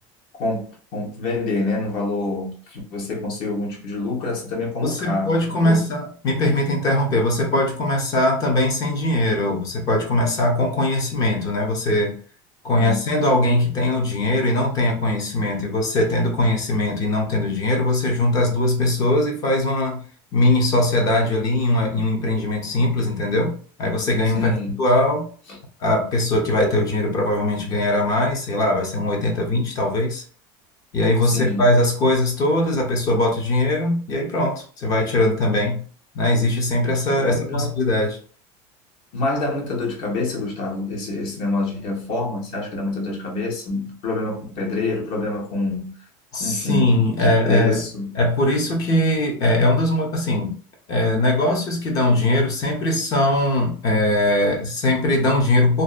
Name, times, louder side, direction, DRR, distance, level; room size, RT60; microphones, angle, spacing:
voice 1, 0.9-5.8 12.7-13.0 24.3-24.8 25.5-25.6 31.3-31.7 37.1-37.7 39.1-45.9 46.4-48.2, left 2 dB, 55° left, -1 dB, 1.0 m, -26 dB
voice 2, 4.8-12.1 12.6-20.0 20.3-23.5 23.8-24.5 24.8-25.3 25.8-30.2 30.9-35.8 36.1-38.2 46.3-47.8 48.1-50.5 50.9-55.8, left 1 dB, 35° left, 2 dB, 0.6 m, -20 dB
2.6 x 2.2 x 2.4 m, 0.43 s
cardioid pair, 165°, 11 cm